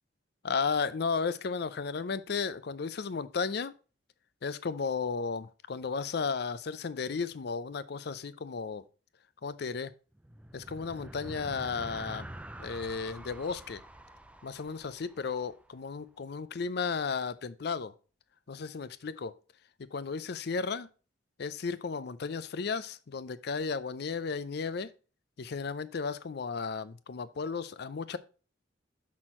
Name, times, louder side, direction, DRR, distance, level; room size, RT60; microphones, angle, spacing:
voice 1, 0.4-3.7 4.4-8.8 9.4-9.9 10.5-12.3 12.6-13.8 14.4-17.9 18.5-19.3 19.9-20.9 21.4-24.9 25.4-28.2, left 5 dB, 60° left, 0.5 m, -34 dB
sound 1, 10.1-15.8, right 1 dB, 5° right, 0.4 m, -46 dB
6.3 x 6.0 x 4.3 m
head